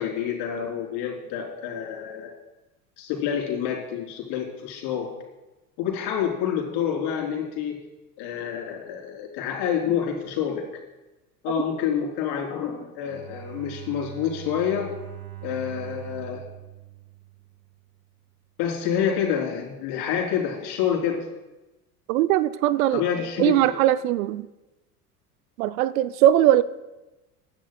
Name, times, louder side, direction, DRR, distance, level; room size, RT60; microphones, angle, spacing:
voice 1, 0.0-2.3 3.0-5.1 5.8-7.8 8.2-10.6 11.4-14.9 15.4-16.4 18.6-21.3 22.9-23.7, left 8 dB, 60° left, -1 dB, 3.7 m, -28 dB
Bowed string instrument, 13.0-18.0, right 15 dB, 85° right, 2.1 m, -42 dB
voice 2, 22.1-23.0 23.4-24.5 25.6-26.6, right 13 dB, 65° right, 15 dB, 0.6 m, -20 dB
24.5 x 10.5 x 2.3 m, 1.1 s
hypercardioid pair, 70°, 45 cm